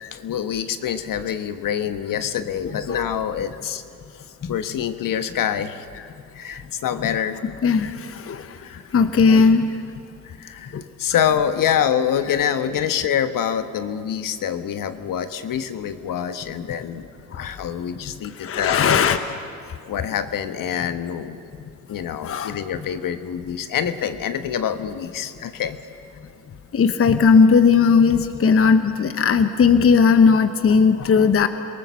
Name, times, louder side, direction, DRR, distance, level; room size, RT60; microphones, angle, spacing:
voice 1, 0.1-3.8 4.1-4.2 4.5-5.8 6.3-7.4 8.6-8.8 9.3-9.4 10.2-10.7 11.0-17.1 17.4-19.1 19.8-21.4 21.9-25.8, left 9 dB, 55° left, 10 dB, 1.4 m, -26 dB
voice 2, 7.6-8.6 8.9-9.7 10.7-10.8 13.0-13.1 17.3-17.5 18.4-19.2 22.2-22.6 26.7-31.5, left 5 dB, 35° left, 10 dB, 1.1 m, -17 dB
27.0 x 18.5 x 7.1 m, 2.4 s
hypercardioid pair, 65°, 39 cm